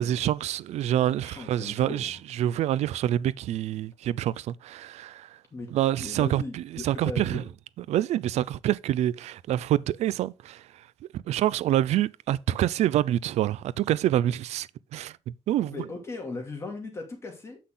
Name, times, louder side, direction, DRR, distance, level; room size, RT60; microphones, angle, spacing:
voice 1, 0.0-5.3 5.7-7.4 7.9-10.6 11.1-14.7 14.9-15.7, right 12 dB, 85° right, 0.4 m, -26 dB
voice 2, 1.2-2.2 5.5-5.7 6.0-7.4 15.6-17.6, left 3 dB, 25° left, 2.6 m, -38 dB
8.3 x 5.8 x 3.8 m
wide cardioid pair, 165°, 11 cm